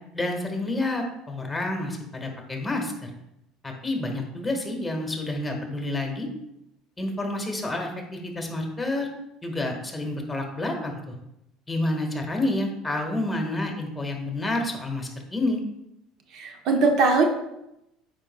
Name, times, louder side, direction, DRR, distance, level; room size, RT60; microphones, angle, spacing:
voice 1, 0.1-3.1 3.6-6.3 7.0-9.1 9.4-11.1 11.7-15.6, left 2 dB, 15° left, 2 dB, 1.6 m, -29 dB
voice 2, 16.3-17.2, right 3 dB, 60° right, 4 dB, 0.9 m, -21 dB
8.7 x 5.3 x 2.3 m, 0.85 s
hypercardioid pair, 80°, 0 cm